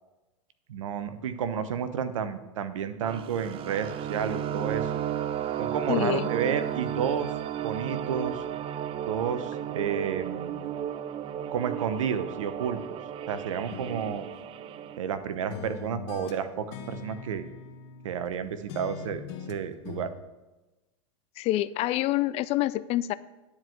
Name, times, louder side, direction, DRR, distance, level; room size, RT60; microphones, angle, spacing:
voice 1, 0.7-5.0 5.6-7.3 7.6-8.4 9.1-10.5 11.5-12.8 13.3-14.2 15.0-17.5 18.0-19.2 19.5-20.1, right 7 dB, 75° right, 10 dB, 1.0 m, -31 dB
sound 1, 3.0-15.0, right 10 dB, 35° right, 0.6 m, -33 dB
voice 2, 5.9-6.3 21.4-23.1, left 15 dB, 40° left, 16 dB, 0.4 m, -27 dB
sound 2, 13.7-15.2 15.5-18.4 18.7-20.1, left 6 dB, 60° left, 1.2 m, -42 dB
10.0 x 4.8 x 7.9 m, 1.1 s
hypercardioid pair, 100°, 16 cm